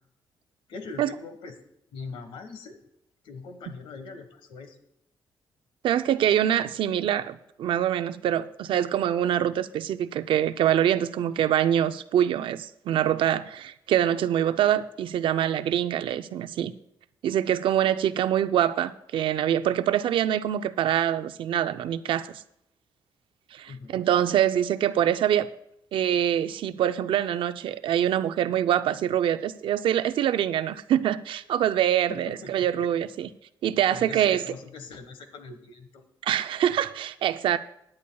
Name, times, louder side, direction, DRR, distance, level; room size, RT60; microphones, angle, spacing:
voice 1, 0.7-1.6 1.9-2.8 3.2-4.8 23.7-24.1 32.1-32.8 33.9-36.0, left 4 dB, 85° left, 1.4 m, -41 dB
voice 2, 5.8-16.7 17.2-22.4 23.5-25.5 25.9-33.3 33.6-34.4 36.2-37.6, right 10 dB, 80° right, 0.5 m, -25 dB
16.5 x 9.7 x 2.3 m
cardioid pair, 110°, 9 cm